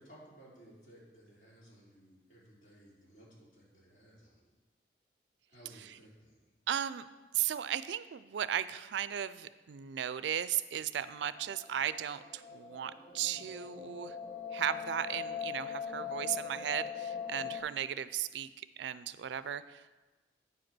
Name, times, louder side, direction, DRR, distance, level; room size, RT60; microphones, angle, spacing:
voice 1, 0.0-4.5 5.5-6.5, right 1 dB, 45° left, -7 dB, 3.5 m, -58 dB
voice 2, 6.7-7.1 7.3-14.2 14.5-20.0, right 10 dB, 85° right, 15 dB, 0.4 m, -36 dB
sound 1, 11.2-17.6, left 7 dB, 30° left, 1.6 m, -41 dB
9.5 x 5.0 x 6.1 m, 1.2 s
head